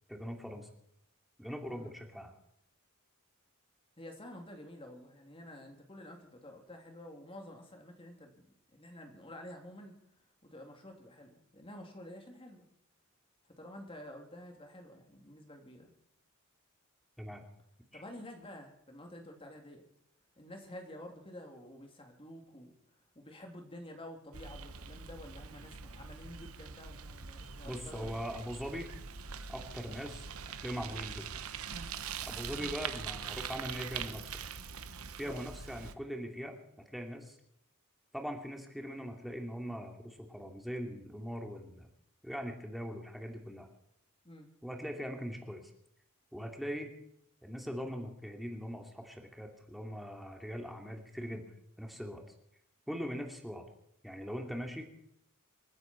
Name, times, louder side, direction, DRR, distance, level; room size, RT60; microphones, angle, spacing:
voice 1, 0.1-0.7 1.4-2.3 17.2-17.4 17.9-18.0 27.7-28.9 29.5-30.2 30.6-31.3 32.2-34.3 35.2-36.6 36.9-37.4 38.1-41.9 42.2-43.7 44.6-45.6 46.3-46.9 47.4-51.4 51.8-52.2 52.9-53.6 54.0-54.9, equal, ahead, 2 dB, 2.6 m, -41 dB
voice 2, 4.0-8.4 8.7-9.9 10.4-12.7 13.6-15.9 17.9-19.9 20.4-22.7 23.1-28.2 32.6-32.8 35.2-35.4 44.2-44.5 52.9-53.1, left 1 dB, 25° left, 3 dB, 3.0 m, -50 dB
Bicycle, 24.3-35.9, right 6 dB, 90° right, 1.1 m, -43 dB
28.0 x 9.7 x 4.5 m, 0.75 s
head